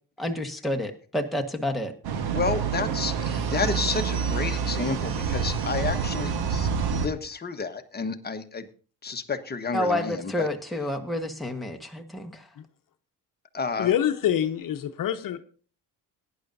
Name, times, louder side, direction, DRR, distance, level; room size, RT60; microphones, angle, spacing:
voice 1, 0.2-1.9 9.7-12.5, left 1 dB, ahead, 1.5 m, -29 dB
sound 1, 2.0-7.1, right 6 dB, 85° right, 1.4 m, -27 dB
voice 2, 2.3-8.7 9.0-10.5 13.5-13.9, left 4 dB, 25° left, 1.2 m, -31 dB
voice 3, 13.8-15.4, left 10 dB, 60° left, 1.0 m, -25 dB
18.0 x 10.5 x 2.7 m
cardioid pair, 105°, 38 cm